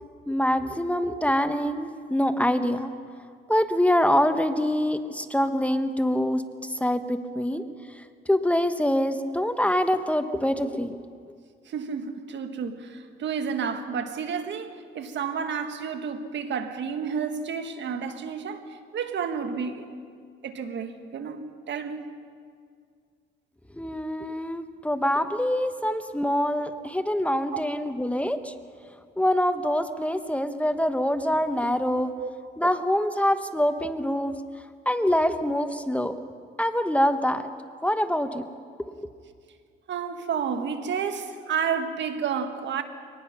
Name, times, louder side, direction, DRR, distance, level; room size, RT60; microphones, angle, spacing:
voice 1, 0.3-2.9 3.5-6.4 6.7-7.6 8.0-11.0 11.3-11.4 23.8-28.5 29.2-32.1 32.6-34.4 34.9-36.2 36.6-37.5 37.8-38.5 38.8-38.9, equal, 5° left, 1.0 m, -25 dB
voice 2, 11.6-19.9 20.4-22.1 27.5-27.6 32.2-32.3 39.9-42.8, right 6 dB, 65° right, 1.6 m, -31 dB
24.0 x 19.0 x 5.9 m
cardioid pair, 90°, 20 cm